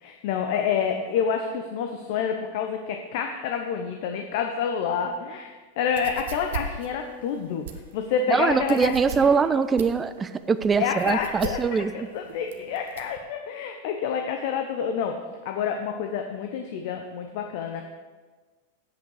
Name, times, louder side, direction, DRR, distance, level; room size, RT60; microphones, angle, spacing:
voice 1, 0.0-5.5 5.8-7.7 7.9-9.3 10.8-15.2 15.4-17.8, left 7 dB, 60° left, 4 dB, 0.7 m, -28 dB
Spade Digging Foley, 5.8-13.2, right 7 dB, 70° right, 0.9 m, -39 dB
voice 2, 8.3-12.1, right 5 dB, 20° right, 12 dB, 0.4 m, -23 dB
8.2 x 7.9 x 4.8 m, 1.4 s
hypercardioid pair, 105°, 0 cm